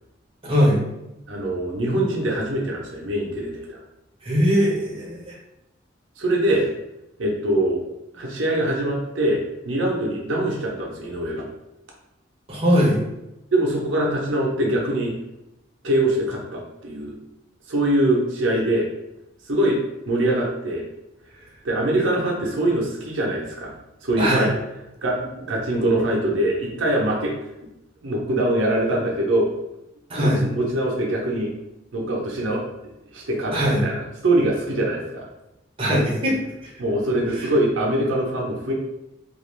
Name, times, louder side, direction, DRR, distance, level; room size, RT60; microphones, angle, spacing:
voice 1, 0.4-0.8 4.2-5.4 12.5-13.0 24.2-24.5 30.1-30.4 33.5-33.9 35.8-36.4 36.6-36.7 37.4-37.5, equal, 30° right, -4 dB, 0.6 m, -20 dB
voice 2, 1.3-3.8 6.2-6.6 7.2-7.8 8.1-11.5 13.5-15.1 15.8-17.2 17.7-18.9 19.5-19.8 20.1-20.8 21.6-23.7 24.0-24.5 25.0-27.3 28.0-29.5 30.1-31.5 31.9-32.6 33.1-35.2 36.8-38.7, right 1 dB, 85° right, -2 dB, 0.6 m, -23 dB
2.4 x 2.3 x 3.1 m, 0.92 s
head